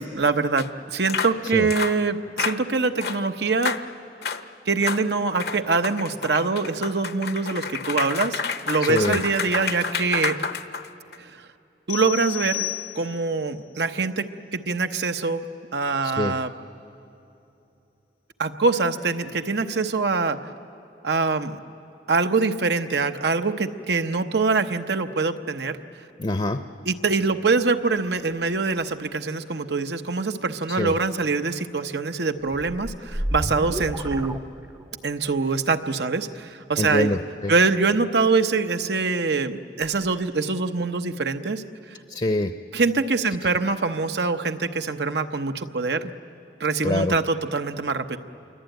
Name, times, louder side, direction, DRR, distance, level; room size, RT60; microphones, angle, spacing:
voice 1, 0.0-3.7 4.7-10.4 11.2-11.3 11.9-12.7 12.9-14.3 14.5-15.4 15.7-16.5 18.4-20.4 21.0-21.6 22.1-25.8 26.8-34.4 35.0-37.2 37.5-41.6 42.7-46.1 46.6-48.2, right 4 dB, 80° right, 7 dB, 1.0 m, -24 dB
sound 1, 0.6-0.7 1.1-1.4 1.7-2.0 2.4-2.6 3.0-3.2 3.6-3.8 4.2-4.4 4.8-5.0 5.4-11.2, left 5 dB, 65° left, 0.9 m, -29 dB
voice 2, 8.8-9.2 16.0-16.4 26.2-26.6 30.8-30.9 36.8-37.5 42.1-42.5 46.8-47.1, left 1 dB, 30° left, 8 dB, 0.7 m, -24 dB
sound 2, 11.9-13.4, left 17 dB, 85° left, 1.6 m, -32 dB
sound 3, 32.5-35.2, equal, 15° right, 0.6 m, -31 dB
27.5 x 23.5 x 9.2 m, 2.8 s
head